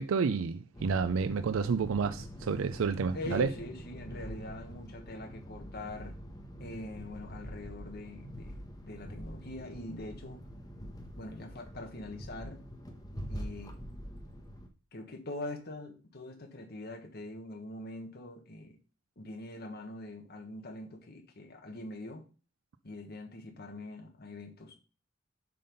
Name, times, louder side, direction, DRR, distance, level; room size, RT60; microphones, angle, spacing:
voice 1, 0.0-3.5, right 5 dB, 85° right, 0.4 m, -30 dB
sound 1, 0.7-14.7, equal, 20° left, 1.1 m, -45 dB
voice 2, 3.1-6.2 6.6-10.4 11.1-12.6 13.3-13.8 14.9-18.8 19.2-22.2 22.8-24.8, left 2 dB, 55° left, 1.5 m, -43 dB
7.6 x 4.0 x 5.4 m
head